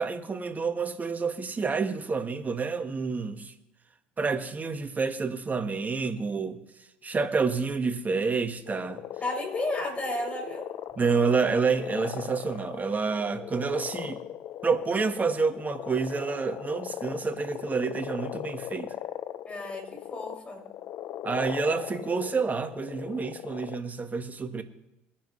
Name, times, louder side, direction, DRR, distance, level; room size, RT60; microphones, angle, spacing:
voice 1, 0.0-3.5 4.2-6.6 7.0-9.0 11.0-14.2 14.6-18.9 21.2-24.6, right 4 dB, 30° right, 1.5 m, -28 dB
sound 1, 8.7-23.8, left 11 dB, 60° left, 0.8 m, -39 dB
voice 2, 9.2-10.6 19.4-20.6, left 2 dB, 20° left, 6.0 m, -32 dB
21.5 x 10.0 x 3.2 m
hypercardioid pair, 70°, 6 cm